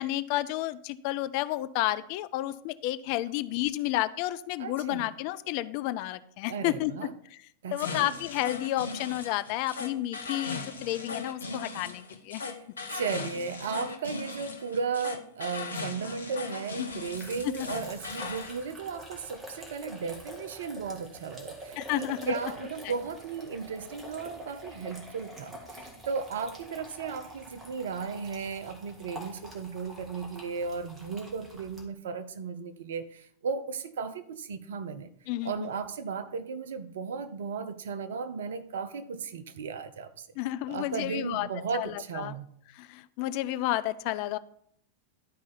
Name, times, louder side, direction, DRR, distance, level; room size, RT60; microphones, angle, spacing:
voice 1, 0.0-6.9 7.3-7.4 7.7-12.4 16.8-17.0 17.6-17.7 21.8-22.3 35.3-35.7 40.4-41.5 41.7-42.3 42.7-44.4, left 15 dB, 45° left, 14 dB, 0.4 m, -31 dB
voice 2, 4.6-5.1 6.5-7.1 7.6-8.1 12.4-12.6 12.9-35.1 35.4-40.3 40.7-42.5, right 5 dB, 60° right, 10 dB, 0.6 m, -35 dB
sound 1, 7.8-18.6, left 4 dB, 75° left, 0.7 m, -38 dB
sound 2, 16.9-31.8, right 1 dB, 20° right, 1.7 m, -46 dB
11.5 x 4.8 x 4.1 m, 0.66 s
figure-of-eight pair, 90°, 0 cm